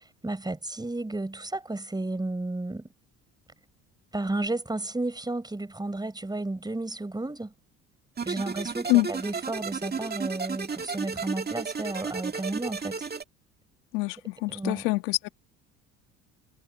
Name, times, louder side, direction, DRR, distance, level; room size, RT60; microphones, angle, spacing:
voice 1, 0.2-2.9 4.1-7.5 8.2-13.1 14.5-14.9, right 2 dB, 10° right, 4.4 m, -32 dB
sound 1, 8.2-13.2, right 5 dB, 30° right, 2.0 m, -33 dB
voice 2, 13.9-15.3, left 24 dB, 80° left, 1.6 m, -25 dB
hypercardioid pair, 70°, 33 cm